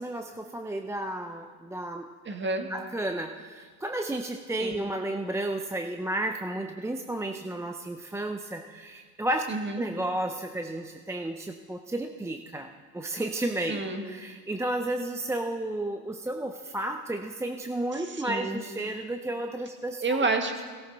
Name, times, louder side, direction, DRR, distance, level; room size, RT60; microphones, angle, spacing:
voice 1, 0.0-2.1 2.7-9.4 9.8-12.7 12.9-20.0, right 1 dB, 5° right, 5 dB, 0.5 m, -32 dB
voice 2, 2.2-2.7 4.6-4.8 9.5-9.8 13.7-14.0 18.0-18.6 20.0-20.6, right 3 dB, 25° right, 5 dB, 1.7 m, -29 dB
17.5 x 12.5 x 4.0 m, 1.5 s
supercardioid pair, 95°, 44 cm